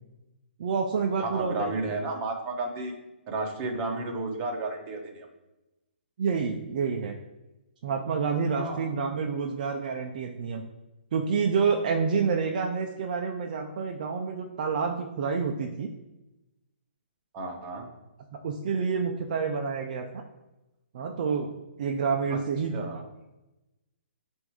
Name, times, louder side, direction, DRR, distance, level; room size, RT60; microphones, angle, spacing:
voice 1, 0.6-1.7 6.2-7.2 7.8-10.6 11.1-15.9 18.4-20.2 20.9-21.5 21.8-22.9, right 5 dB, 45° right, 3 dB, 0.5 m, -28 dB
voice 2, 1.2-2.9 3.3-5.3 8.6-8.9 17.3-17.9 22.3-22.4 22.7-23.0, right 2 dB, 20° right, 2 dB, 1.0 m, -32 dB
7.9 x 2.7 x 4.8 m, 1.0 s
hypercardioid pair, 160°, 6 cm